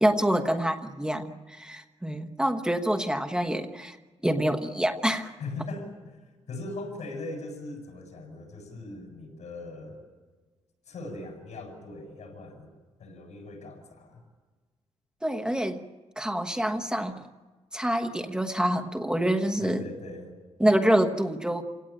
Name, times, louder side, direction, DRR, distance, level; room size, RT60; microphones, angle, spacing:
voice 1, 0.0-4.0 4.2-5.3 15.2-15.8 16.2-17.3 17.7-19.8 20.6-21.6, right 1 dB, 5° right, 5 dB, 1.2 m, -26 dB
voice 2, 5.4-10.0 10.9-12.7 13.0-14.2 19.6-20.3, left 2 dB, 85° left, 3 dB, 7.8 m, -40 dB
27.5 x 18.0 x 9.0 m, 1.3 s
wide cardioid pair, 150°, 12 cm